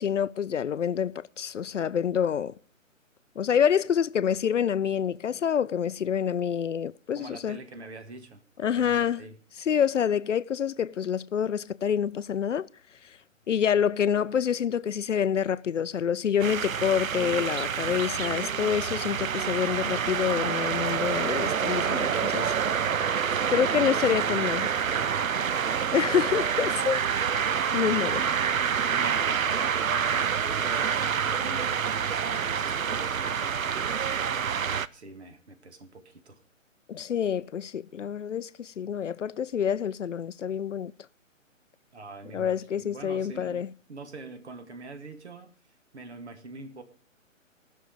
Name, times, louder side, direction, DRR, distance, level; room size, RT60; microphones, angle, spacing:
voice 1, 0.0-2.5 3.4-7.6 8.6-9.2 9.7-12.7 13.5-22.5 22.9-23.1 23.5-24.7 25.9-28.3 36.9-40.9 42.3-43.7, left 8 dB, 65° left, 0.5 m, -27 dB
voice 2, 7.2-9.4 23.3-25.6 27.9-28.3 28.8-31.9 32.2-36.4 41.9-43.6 43.9-45.5 45.9-46.8, right 3 dB, 55° right, 1.9 m, -45 dB
sound 1, 16.4-34.9, right 7 dB, 85° right, 0.6 m, -27 dB
17.5 x 6.4 x 5.1 m
figure-of-eight pair, 135°, 40 cm